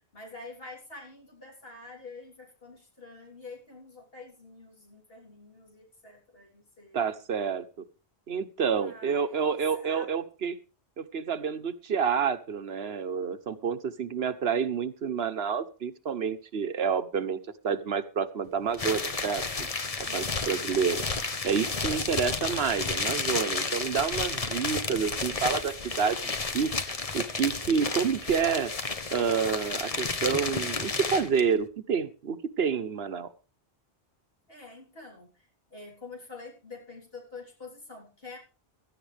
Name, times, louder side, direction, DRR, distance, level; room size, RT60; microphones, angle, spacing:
voice 1, 0.1-7.1 7.4-7.5 8.7-10.1 20.0-20.8 34.5-38.4, left 3 dB, 65° left, -2 dB, 3.9 m, -47 dB
voice 2, 6.9-7.6 8.3-10.6 11.0-19.7 20.1-21.0 21.4-26.7 27.1-28.7 29.1-33.3, right 6 dB, 75° right, 11 dB, 1.2 m, -29 dB
sound 1, 18.7-31.4, left 4 dB, 35° left, 1.1 m, -32 dB
16.5 x 13.0 x 3.4 m, 0.34 s
omnidirectional pair, 1.1 m